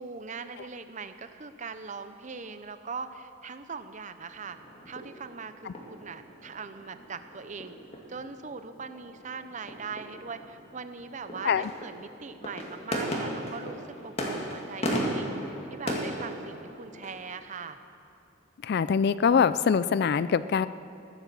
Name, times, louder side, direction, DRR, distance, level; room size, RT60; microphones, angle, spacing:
voice 1, 0.0-4.6 4.9-7.7 8.1-17.8, right 5 dB, 35° right, 10 dB, 0.7 m, -41 dB
sound 1, 4.3-17.2, equal, 30° left, 2.1 m, -36 dB
voice 2, 18.6-20.7, left 6 dB, 50° left, 16 dB, 0.3 m, -23 dB
15.0 x 11.5 x 7.0 m, 2.6 s
head